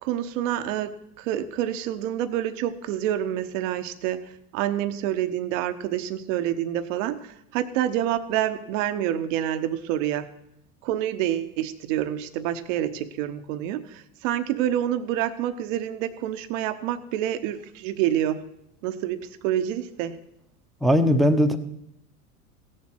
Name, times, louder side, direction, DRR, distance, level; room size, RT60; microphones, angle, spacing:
voice 1, 0.0-10.3 10.8-18.5 18.8-20.2, right 11 dB, 55° right, 11 dB, 0.9 m, -27 dB
voice 2, 20.8-21.6, equal, ahead, 6 dB, 0.9 m, -19 dB
16.0 x 7.4 x 6.3 m, 0.79 s
hypercardioid pair, 85°, 45 cm